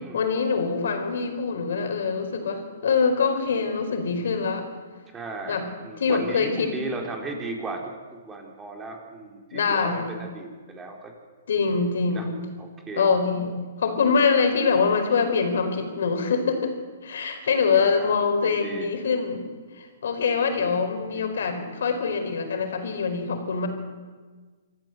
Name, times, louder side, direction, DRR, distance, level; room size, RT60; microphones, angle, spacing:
voice 1, 0.1-4.6 5.5-5.7 6.0-6.7 9.5-10.2 11.5-12.4 13.0-16.7 17.0-19.5 19.8-23.7, left 5 dB, 70° left, 6 dB, 4.6 m, -24 dB
voice 2, 5.1-11.1 12.1-12.3 12.6-13.1 17.4-18.2 18.4-18.9 20.6-20.8 21.1-21.3, right 3 dB, 15° right, 1 dB, 4.1 m, -36 dB
26.0 x 15.0 x 8.0 m, 1.4 s
hypercardioid pair, 140°, 0 cm